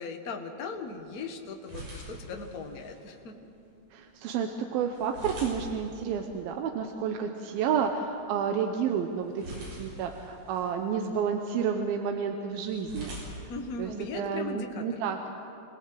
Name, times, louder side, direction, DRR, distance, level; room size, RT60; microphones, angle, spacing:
voice 1, 0.0-3.4 13.5-15.0, left 4 dB, 50° left, 3 dB, 1.1 m, -38 dB
sound 1, 0.6-14.6, right 1 dB, 50° right, 7.4 m, -47 dB
voice 2, 3.9-9.4 9.8-13.2 13.8-15.2, right 7 dB, 85° right, 4 dB, 2.8 m, -30 dB
27.0 x 18.0 x 7.9 m, 2.7 s
omnidirectional pair, 4.2 m